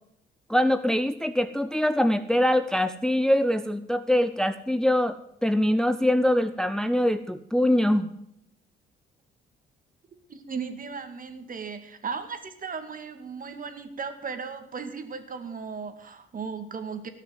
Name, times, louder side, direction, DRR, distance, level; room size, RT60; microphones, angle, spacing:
voice 1, 0.5-8.1, left 1 dB, 5° left, 11 dB, 0.6 m, -23 dB
voice 2, 10.3-17.1, right 5 dB, 45° right, 8 dB, 2.2 m, -36 dB
18.0 x 6.5 x 7.9 m, 0.77 s
cardioid pair, 90°, 20 cm